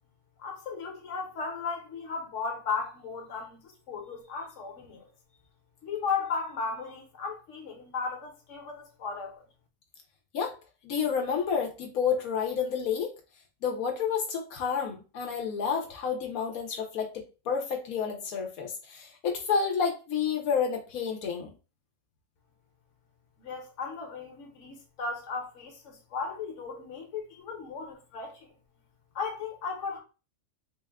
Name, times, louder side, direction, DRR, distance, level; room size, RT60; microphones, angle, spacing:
voice 1, 0.4-5.0 5.8-9.4 23.4-28.4 29.1-30.0, left 5 dB, 60° left, 1.3 m, -35 dB
voice 2, 10.8-13.1 13.6-21.5, left 6 dB, 85° left, 1.2 m, -30 dB
3.6 x 2.2 x 3.4 m
omnidirectional pair, 1.5 m